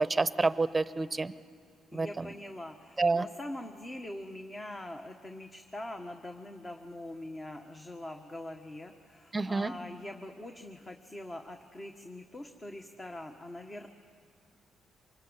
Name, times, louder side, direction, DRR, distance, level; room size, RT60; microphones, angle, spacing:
voice 1, 0.0-1.3 1.9-2.3 3.0-3.2 9.3-9.7, right 3 dB, 25° right, 14 dB, 0.9 m, -28 dB
voice 2, 1.9-13.9, left 1 dB, 25° left, 4 dB, 1.5 m, -43 dB
25.5 x 21.0 x 9.9 m, 2.2 s
cardioid pair, 90°, 0 cm